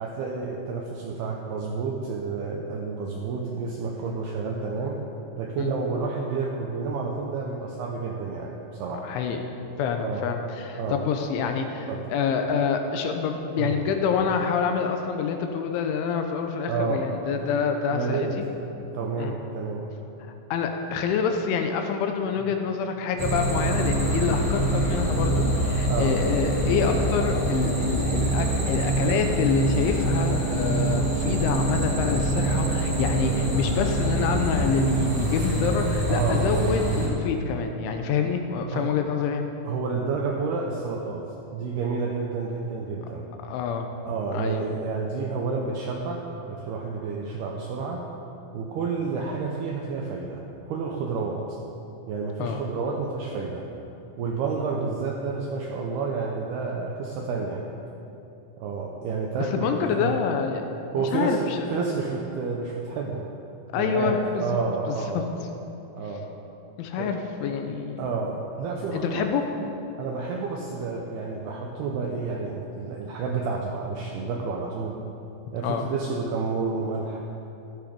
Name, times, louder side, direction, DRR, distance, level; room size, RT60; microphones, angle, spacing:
voice 1, 0.0-5.0 5.4-9.1 10.0-10.3 10.7-11.0 11.9-12.1 13.6-13.8 16.7-17.1 17.4-17.5 17.9-18.4 18.8-19.9 22.4-22.5 25.9-26.2 34.7-34.9 36.1-36.7 38.7-38.9 39.6-41.2 41.5-43.3 44.1-48.0 48.5-50.4 50.7-51.6 52.1-53.6 54.2-57.6 58.6-60.1 60.9-61.4 61.7-63.2 63.8-65.3 65.9-66.3 67.0-67.1 68.0-69.3 70.0-75.0 75.5-77.2, right 4 dB, 80° right, 0 dB, 2.3 m, -30 dB
voice 2, 9.0-9.4 9.8-18.4 19.2-19.4 20.5-39.5 43.4-43.9 44.3-44.7 52.4-52.6 59.4-60.6 61.0-61.7 63.7-64.6 64.9-65.2 66.8-68.1 68.9-69.4 75.6-75.9, left 6 dB, 80° left, 5 dB, 3.1 m, -27 dB
sound 1, 23.2-37.1, right 1 dB, 5° right, 2.7 m, -25 dB
15.0 x 12.0 x 5.3 m, 2.9 s
omnidirectional pair, 5.8 m